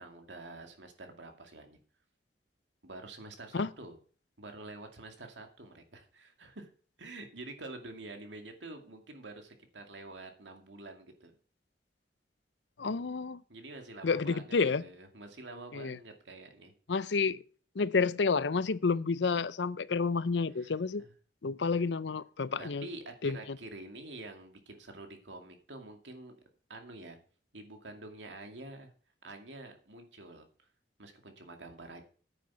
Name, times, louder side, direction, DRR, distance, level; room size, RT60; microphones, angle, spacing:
voice 1, 0.0-1.8 2.8-4.0 4.4-6.7 7.0-11.3 13.5-14.6 14.8-16.7 20.6-20.7 21.0-21.1 22.6-26.4 26.7-27.2 27.5-28.9 29.2-30.5 31.0-32.0, right 2 dB, 90° right, 2.3 m, -47 dB
voice 2, 12.8-13.4 14.0-14.8 15.7-16.0 16.9-17.4 17.8-21.0 21.4-22.9 23.2-23.6, left 4 dB, 80° left, 0.6 m, -30 dB
9.4 x 7.8 x 5.8 m
head